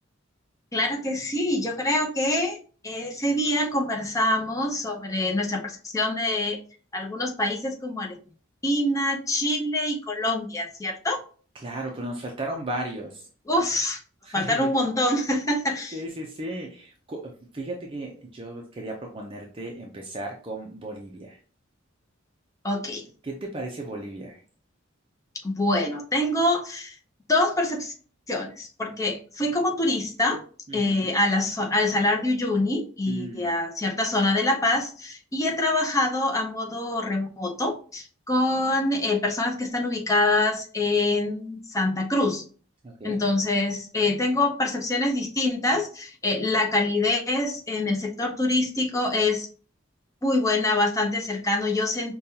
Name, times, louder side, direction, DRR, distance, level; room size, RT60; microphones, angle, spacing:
voice 1, 0.7-2.6 2.8-6.6 6.9-8.2 8.6-11.2 13.5-14.0 14.3-16.0 22.6-23.1 25.4-27.0 27.3-27.9 28.3-30.4 30.7-42.4 43.0-49.5 50.2-52.1, left 2 dB, 15° left, 1 dB, 0.6 m, -25 dB
voice 2, 11.5-13.3 14.2-14.7 15.9-21.4 23.2-24.4 30.7-31.1 33.1-33.5 42.8-43.2, right 1 dB, 25° right, 1 dB, 0.5 m, -35 dB
5.2 x 2.3 x 2.7 m, 0.40 s
head